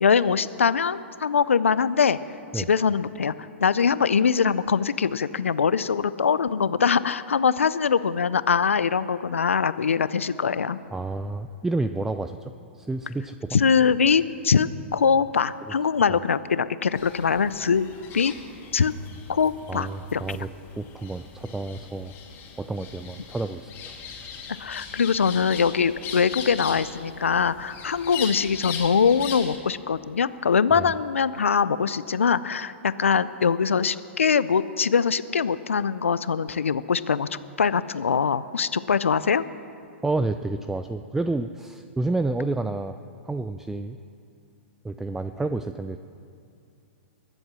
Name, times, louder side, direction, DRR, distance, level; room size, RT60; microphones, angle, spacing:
voice 1, 0.0-2.2 2.5-3.3 3.6-10.8 13.5-17.9 18.1-18.3 18.7-18.9 19.3-20.2 24.6-39.4, left 6 dB, 85° left, 16 dB, 0.5 m, -22 dB
voice 2, 10.9-13.6 19.7-22.1 22.6-23.7 30.8-30.9 40.0-44.0 44.8-46.0, right 2 dB, 5° right, 10 dB, 0.4 m, -30 dB
sound 1, 16.9-29.6, left 6 dB, 30° left, 2.3 m, -40 dB
22.0 x 7.9 x 6.2 m, 2.5 s
hypercardioid pair, 115°, 7 cm